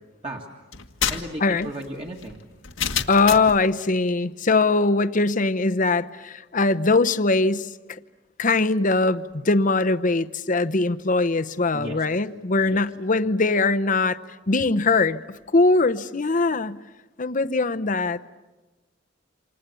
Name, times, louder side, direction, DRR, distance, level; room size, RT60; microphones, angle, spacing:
sound 1, 0.7-3.6, left 8 dB, 80° left, 1.7 m, -29 dB
voice 1, 1.1-2.4 11.7-12.1 12.7-12.8, right 1 dB, 30° right, 0 dB, 2.0 m, -35 dB
voice 2, 3.1-7.7 8.4-14.2 14.5-15.2 15.5-16.8 17.2-18.3, left 3 dB, 40° left, 11 dB, 0.8 m, -21 dB
28.5 x 27.0 x 7.0 m, 1.2 s
head